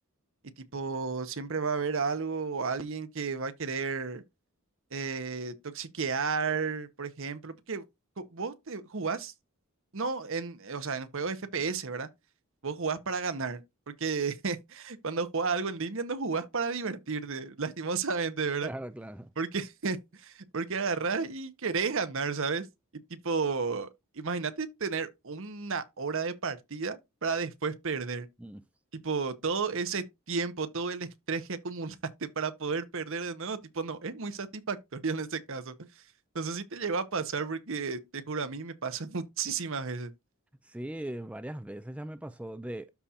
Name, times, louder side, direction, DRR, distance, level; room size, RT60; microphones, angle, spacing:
voice 1, 0.6-4.2 4.9-7.8 8.2-9.3 9.9-12.1 12.6-18.7 19.4-22.7 23.1-23.9 24.1-28.3 28.9-36.0 36.3-40.1, right 5 dB, 60° right, 0.9 m, -33 dB
voice 2, 18.6-19.3 28.4-28.6 40.6-42.9, right 1 dB, 5° right, 0.4 m, -39 dB
13.0 x 4.3 x 2.5 m
head